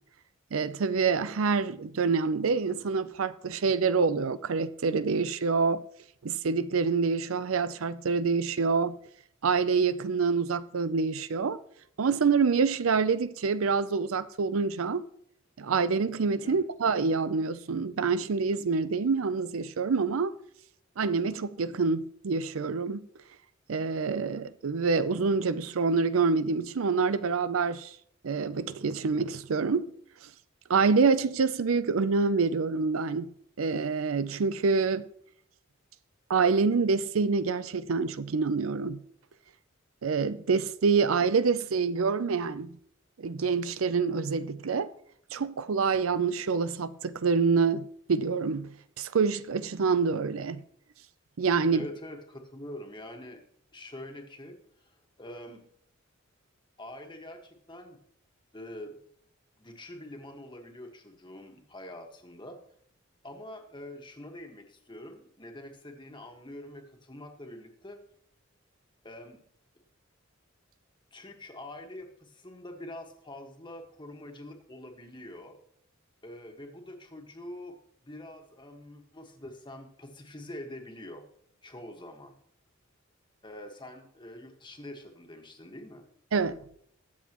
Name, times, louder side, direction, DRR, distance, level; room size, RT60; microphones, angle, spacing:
voice 1, 0.5-5.8 6.2-9.0 9.4-11.6 12.0-15.1 15.6-20.3 21.0-23.0 23.7-27.9 28.2-29.9 30.7-33.3 33.6-35.1 36.3-39.0 40.0-42.7 43.2-44.9 45.3-50.6 51.4-51.8 86.3-86.6, right 5 dB, 85° right, 0.5 m, -26 dB
voice 2, 51.7-53.4 53.7-55.6 56.8-58.0 58.5-59.0 59.6-62.6 63.2-68.0 69.0-69.4 71.1-75.6 76.2-77.8 78.0-81.2 81.6-82.3 83.4-86.0, left 1 dB, 25° left, 1.5 m, -45 dB
21.5 x 7.3 x 3.0 m
head